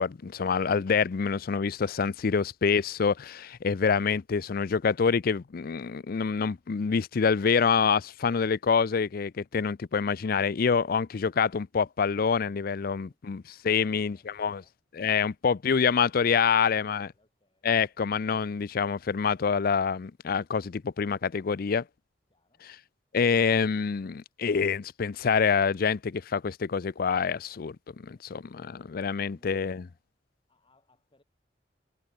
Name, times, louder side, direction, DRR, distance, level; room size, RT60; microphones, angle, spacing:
voice 1, 0.0-14.6 15.0-17.1 17.6-21.8 23.1-29.8, left 6 dB, 55° left, 0.5 m, -26 dB
voice 2, 12.8-13.2 13.6-14.8 16.1-18.0 22.3-22.7 30.5-31.2, left 2 dB, 30° left, 7.7 m, -67 dB
head